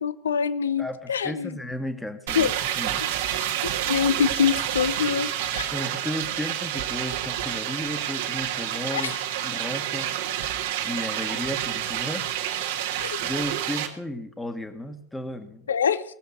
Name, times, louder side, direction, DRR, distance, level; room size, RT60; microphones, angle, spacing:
voice 1, 0.0-1.6 2.3-2.5 3.0-3.1 3.4-3.5 3.9-5.7 8.9-9.0 13.0-13.2 15.7-16.0, left 7 dB, 65° left, 15 dB, 0.7 m, -25 dB
voice 2, 0.8-3.1 5.7-9.2 9.4-10.1 10.8-12.4 13.2-15.7, left 1 dB, 5° left, 7 dB, 1.5 m, -34 dB
sound 1, 2.3-13.9, right 11 dB, 55° right, 1.8 m, -29 dB
19.0 x 7.6 x 6.6 m, 0.70 s
figure-of-eight pair, 90°, 0 cm